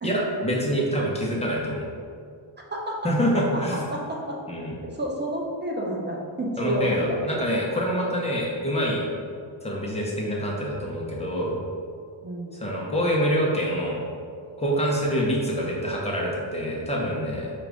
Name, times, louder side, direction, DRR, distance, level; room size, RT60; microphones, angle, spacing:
voice 1, 0.0-1.9 3.0-3.9 4.5-4.8 6.6-9.1 9.6-11.6 12.6-14.0 14.6-17.5, equal, 15° left, -3 dB, 0.7 m, -26 dB
voice 2, 2.7-3.1 3.5-3.6 3.9-4.4 4.9-7.4 12.2-12.6, right 1 dB, 25° right, -2 dB, 0.5 m, -30 dB
4.8 x 2.5 x 3.4 m, 2.3 s
cardioid pair, 115°, 49 cm